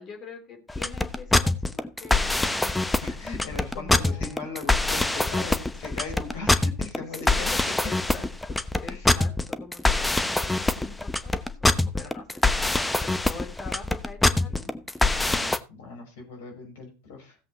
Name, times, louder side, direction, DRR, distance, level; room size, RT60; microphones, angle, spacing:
voice 1, 0.0-2.7 3.7-4.4 7.3-14.8, left 4 dB, 40° left, 2 dB, 4.0 m, -44 dB
sound 1, 0.7-15.6, left 2 dB, 10° left, 1.0 m, -24 dB
voice 2, 3.0-7.7 8.9-9.2 15.3-17.4, left 4 dB, 70° left, 2 dB, 5.3 m, -39 dB
16.5 x 7.7 x 3.2 m, 0.30 s
figure-of-eight pair, 75°, 0 cm